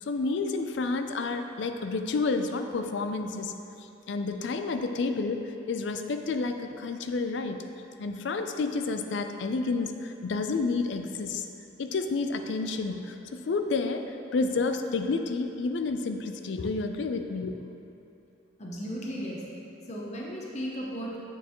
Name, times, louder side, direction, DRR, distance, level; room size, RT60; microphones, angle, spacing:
voice 1, 0.0-7.6 8.0-11.5 11.8-17.8, left 3 dB, 65° left, 7 dB, 0.4 m, -30 dB
voice 2, 18.6-19.5 19.9-21.2, equal, 35° left, -3 dB, 0.7 m, -35 dB
7.1 x 6.6 x 3.0 m, 2.8 s
head